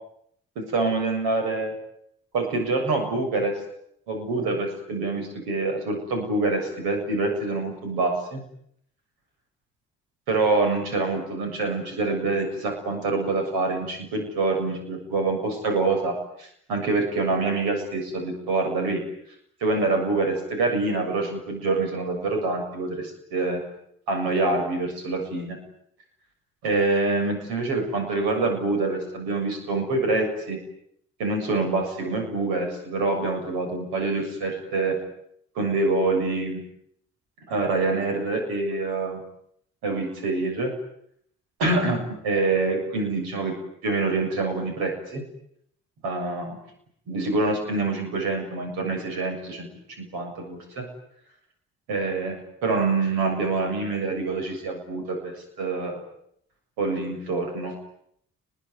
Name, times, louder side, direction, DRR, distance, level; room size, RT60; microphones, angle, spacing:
voice 1, 0.6-1.7 2.3-3.5 4.1-8.4 10.3-19.0 19.6-23.6 24.1-25.6 26.6-30.6 31.2-35.0 35.6-36.6 37.5-39.2 39.8-40.7 41.6-43.6 43.8-45.2 46.0-46.6 47.1-49.7 50.0-50.9 51.9-56.0 56.8-57.7, right 3 dB, 70° right, 4 dB, 7.2 m, -26 dB
29.0 x 21.0 x 9.7 m, 0.70 s
figure-of-eight pair, 40°, 39 cm